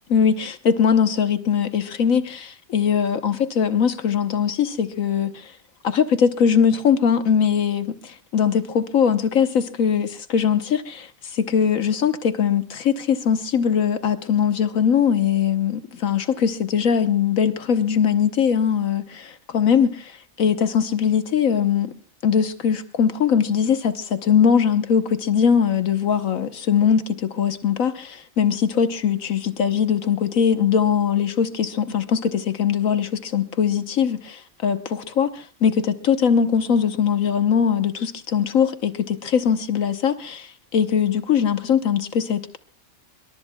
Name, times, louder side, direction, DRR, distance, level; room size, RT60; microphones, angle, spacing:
voice 1, 0.1-5.5 5.8-21.9 22.2-42.6, left 7 dB, 75° left, 1.4 m, -21 dB
26.5 x 23.5 x 2.2 m
omnidirectional pair, 1.4 m